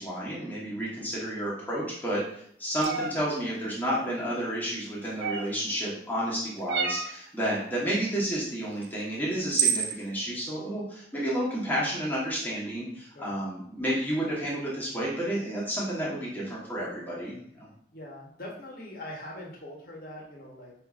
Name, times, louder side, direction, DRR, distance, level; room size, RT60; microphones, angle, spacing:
voice 1, 0.0-17.7, right 1 dB, 10° left, -7 dB, 1.0 m, -31 dB
sound 1, 2.8-3.1 5.2-5.6 6.7-7.1 8.8-8.9 9.5-9.9, right 7 dB, 70° right, 0.3 m, -27 dB
voice 2, 17.9-20.7, left 1 dB, 55° left, -2 dB, 1.0 m, -42 dB
5.0 x 2.6 x 2.4 m, 0.68 s
head